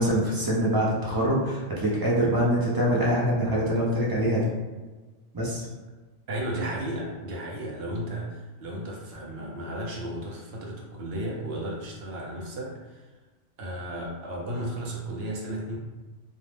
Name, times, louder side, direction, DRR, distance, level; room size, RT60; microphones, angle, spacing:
voice 1, 0.0-4.5 5.3-5.7, equal, 35° right, -5 dB, 0.3 m, -24 dB
voice 2, 6.3-13.1 13.6-15.8, right 1 dB, 65° right, -2 dB, 0.8 m, -34 dB
2.6 x 2.0 x 3.2 m, 1.3 s
omnidirectional pair, 1.2 m